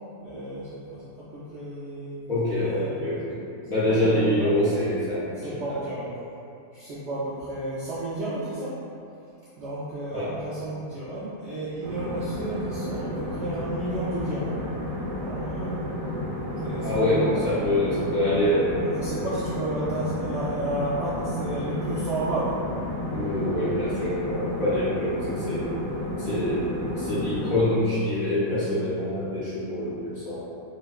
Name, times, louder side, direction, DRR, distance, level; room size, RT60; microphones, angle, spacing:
voice 1, 0.2-3.0 3.9-4.5 5.4-6.1 6.7-8.7 9.6-14.6 15.2-15.7 16.6-17.4 17.9-18.0 18.8-22.5 27.5-27.6, right 1 dB, 80° right, -11 dB, 0.6 m, -32 dB
voice 2, 2.3-3.4 3.7-5.8 10.1-10.3 16.8-18.8 23.1-25.7 26.2-30.4, left 1 dB, 50° left, -11 dB, 0.6 m, -25 dB
sound 1, 11.8-27.6, equal, 60° right, 0.9 m, -31 dB
4.2 x 2.0 x 2.3 m, 2.5 s
omnidirectional pair, 1.7 m